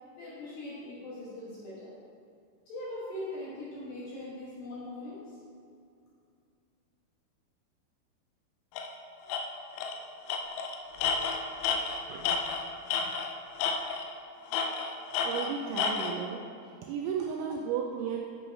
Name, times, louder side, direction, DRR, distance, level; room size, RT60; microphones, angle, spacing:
voice 1, 0.2-1.9 2.7-5.4, left 1 dB, 65° left, -8 dB, 2.4 m, -41 dB
Tools, 8.8-8.9 9.3-9.4 9.8-10.0 10.3-13.3 13.6-14.1 14.5-16.2, left 5 dB, 80° left, 2.8 m, -30 dB
voice 2, 15.2-18.2, right 7 dB, 85° right, 1 dB, 2.7 m, -34 dB
8.5 x 7.0 x 4.6 m, 2.4 s
omnidirectional pair, 5.8 m